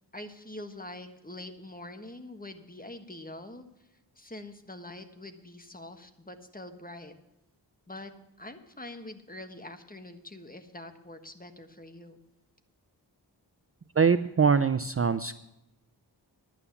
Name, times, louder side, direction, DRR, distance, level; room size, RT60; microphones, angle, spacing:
voice 1, 0.1-3.6 4.2-7.1 7.9-8.1 8.4-12.2, left 1 dB, 20° left, 7 dB, 1.4 m, -44 dB
voice 2, 13.9-15.3, right 5 dB, 35° right, 12 dB, 0.5 m, -23 dB
11.0 x 9.1 x 7.1 m, 0.87 s
wide cardioid pair, 50°, 42 cm